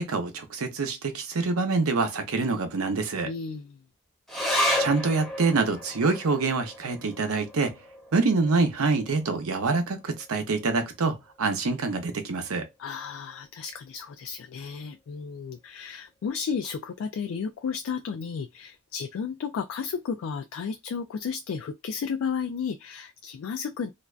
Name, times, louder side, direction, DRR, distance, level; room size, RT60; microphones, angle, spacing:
voice 1, 0.0-3.3 4.8-7.8 8.1-12.7, right 4 dB, 80° right, 0.7 m, -26 dB
voice 2, 3.2-3.8 12.8-23.9, left 6 dB, 75° left, 0.3 m, -33 dB
sound 1, 4.3-11.1 11.4-11.5 11.8-12.5 13.0-13.1, left 1 dB, ahead, 0.9 m, -33 dB
2.5 x 2.2 x 2.3 m
head